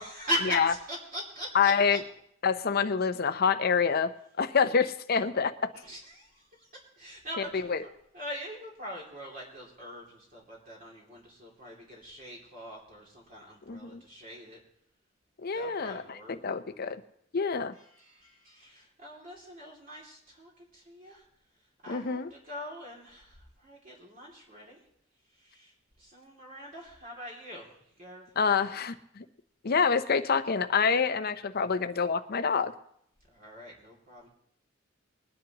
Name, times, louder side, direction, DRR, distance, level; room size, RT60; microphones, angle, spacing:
voice 1, 0.0-2.0 5.8-6.7 7.0-14.6 15.5-16.4 17.8-21.2 21.8-24.8 25.4-28.3 33.3-34.3, equal, 45° right, -3 dB, 2.6 m, -41 dB
voice 2, 1.5-2.0 2.4-5.7 7.4-7.8 13.7-14.0 15.4-17.0 17.3-17.7 21.9-22.3 28.4-29.2 29.6-32.7, left 6 dB, 50° left, 10 dB, 0.6 m, -27 dB
21.0 x 10.5 x 2.9 m, 0.71 s
head